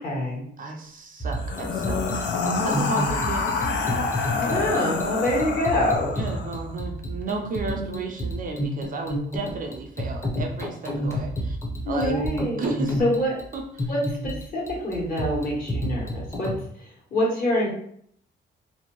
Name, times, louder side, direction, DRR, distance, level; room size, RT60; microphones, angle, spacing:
voice 1, 0.0-0.4 4.5-6.1 7.3-7.9 11.8-12.6 13.0-13.3 13.9-16.5 16.8-17.7, left 1 dB, 45° left, -4 dB, 1.3 m, -26 dB
voice 2, 0.6-3.7 4.1-4.3 6.1-11.6 11.9-12.2 12.6-13.0 13.5-13.9, right 4 dB, 45° right, 3 dB, 0.5 m, -33 dB
sound 1, 1.2-16.6, equal, 15° left, 0.7 m, -30 dB
sound 2, 1.4-6.6, left 4 dB, 65° left, 0.5 m, -27 dB
2.6 x 2.1 x 2.9 m, 0.66 s
cardioid pair, 90°, 20 cm